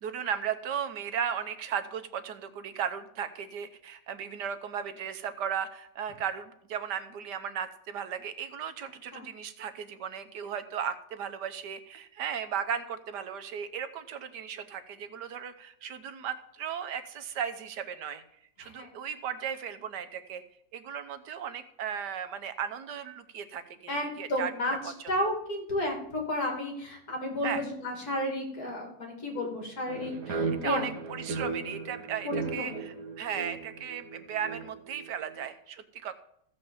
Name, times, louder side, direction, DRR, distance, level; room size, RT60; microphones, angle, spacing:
voice 1, 0.0-18.2 18.6-20.4 20.7-23.9 24.2-24.5 24.8-24.9 27.4-27.6 30.6-36.1, right 8 dB, 80° right, 10 dB, 1.5 m, -36 dB
voice 2, 23.9-30.9 32.2-32.8, left 1 dB, 65° left, 1 dB, 3.2 m, -32 dB
sound 1, 29.9-35.3, right 4 dB, 60° right, 1.6 m, -36 dB
15.0 x 5.3 x 7.1 m, 0.70 s
omnidirectional pair, 1.8 m